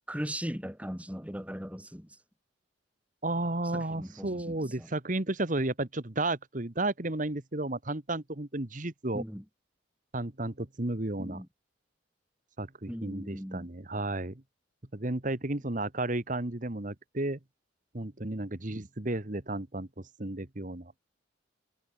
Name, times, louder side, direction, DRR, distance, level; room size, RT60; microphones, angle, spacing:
voice 1, 0.1-2.2 3.7-4.9 9.1-9.4 11.2-11.5 12.9-13.7, equal, 5° right, 8.0 m, -38 dB
voice 2, 3.2-9.2 10.1-11.4 12.6-14.4 14.9-17.4 17.9-20.9, right 2 dB, 40° right, 1.5 m, -33 dB
head